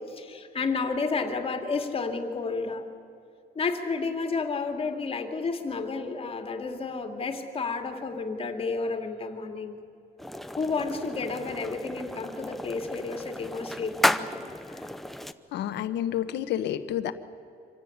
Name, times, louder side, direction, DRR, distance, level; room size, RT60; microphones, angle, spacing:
voice 1, 0.1-2.8 3.6-9.8 10.6-14.3, left 4 dB, 35° left, 5 dB, 2.4 m, -31 dB
sound 1, 10.2-15.3, equal, ahead, 0.7 m, -32 dB
voice 2, 15.5-17.1, left 11 dB, 85° left, 10 dB, 1.2 m, -29 dB
25.5 x 16.5 x 9.6 m, 2.6 s
cardioid pair, 135°, 17 cm